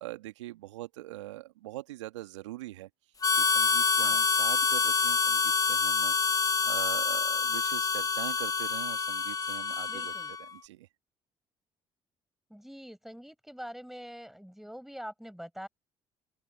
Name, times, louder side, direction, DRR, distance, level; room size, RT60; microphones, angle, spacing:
voice 1, 0.0-2.9 3.3-6.4 6.6-10.1 10.5-10.9, right 16 dB, 80° right, 2.2 m, -42 dB
Harmonica, 3.2-10.5, left 5 dB, 25° left, 0.6 m, -27 dB
voice 2, 9.9-10.3 12.5-15.7, equal, ahead, 6.4 m, -44 dB
open air
hypercardioid pair, 50°, 15 cm